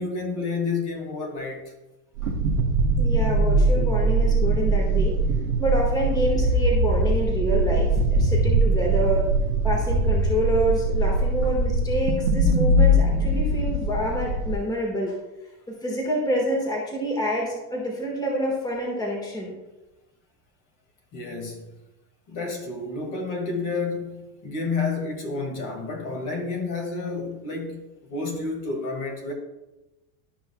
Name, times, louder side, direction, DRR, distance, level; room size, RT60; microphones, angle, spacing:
voice 1, 0.0-1.7 2.2-2.3 21.1-21.7 22.3-29.3, left 3 dB, 45° left, 2.0 m, -30 dB
sound 1, 2.2-14.6, right 2 dB, 85° right, 1.2 m, -21 dB
voice 2, 3.0-5.1 5.6-9.3 9.6-15.2 15.7-19.6, equal, 10° left, 1.5 m, -27 dB
12.5 x 5.6 x 2.3 m
supercardioid pair, 120°, 45 cm